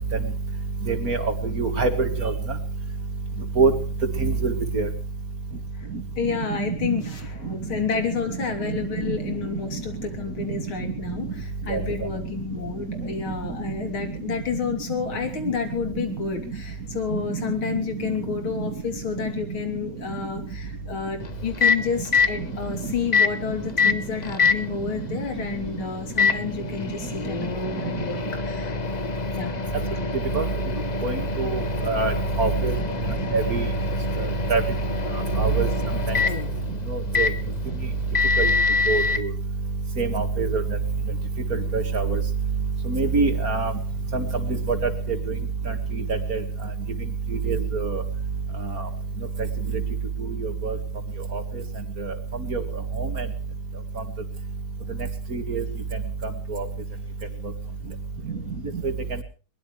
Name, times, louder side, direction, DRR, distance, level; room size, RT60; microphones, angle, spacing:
voice 1, 0.9-2.3 3.6-3.7 4.2-4.9 6.7-6.8 8.7-8.8 9.1-9.2 11.7-11.8 17.3-17.4 30.3-30.4 31.0-32.7 33.3-33.7 34.2-34.6 35.4-35.7 36.1-36.2 36.9-37.3 38.4-38.5 38.9-39.3 40.0-40.6 41.5-42.2 42.9-43.7 44.1-44.3 44.7-44.9 46.1-46.4 47.4-48.0 50.2-50.8 51.3-51.4 52.0-52.1 52.5-52.6 53.0-53.3 55.3-55.6 56.5-56.7, right 4 dB, 45° right, 8 dB, 2.3 m, -24 dB
voice 2, 6.2-28.8 29.3-29.6, left 6 dB, 80° left, 6 dB, 4.0 m, -30 dB
Microwave oven, 21.2-39.2, left 5 dB, 35° left, 0.7 m, -26 dB
22.0 x 20.5 x 3.2 m, 0.36 s
omnidirectional pair, 2.2 m